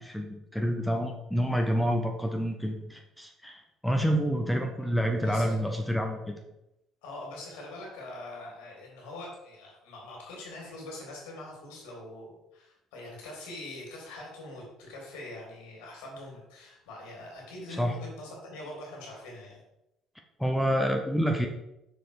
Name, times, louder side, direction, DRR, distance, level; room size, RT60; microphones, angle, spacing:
voice 1, 0.0-6.3 17.7-18.0 20.4-21.5, equal, 5° left, 3 dB, 1.0 m, -28 dB
voice 2, 5.2-5.5 7.0-19.6, left 1 dB, 70° left, -2 dB, 2.9 m, -43 dB
6.4 x 5.0 x 4.8 m, 0.88 s
figure-of-eight pair, 55°, 0 cm